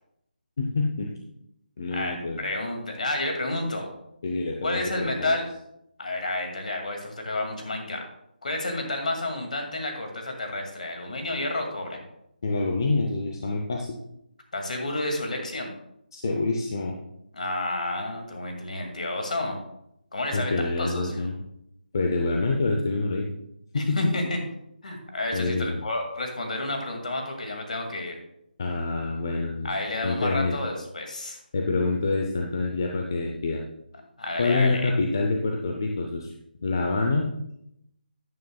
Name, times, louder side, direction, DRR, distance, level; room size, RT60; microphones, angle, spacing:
voice 1, 0.6-1.1 1.8-2.4 4.2-5.3 12.4-13.9 16.1-16.9 20.3-21.4 21.9-23.3 23.7-24.2 25.3-25.8 28.6-29.7 30.0-30.6 31.5-33.6 34.4-36.3 36.6-37.3, left 3 dB, 25° left, 1 dB, 0.6 m, -26 dB
voice 2, 1.9-3.9 4.6-5.5 6.0-8.1 8.4-12.0 14.5-15.7 17.3-19.6 20.1-21.3 23.7-24.4 24.8-28.2 29.6-31.4 34.2-34.9, left 2 dB, 50° left, 3 dB, 2.2 m, -30 dB
12.5 x 9.5 x 2.3 m, 0.79 s
figure-of-eight pair, 180°, 5 cm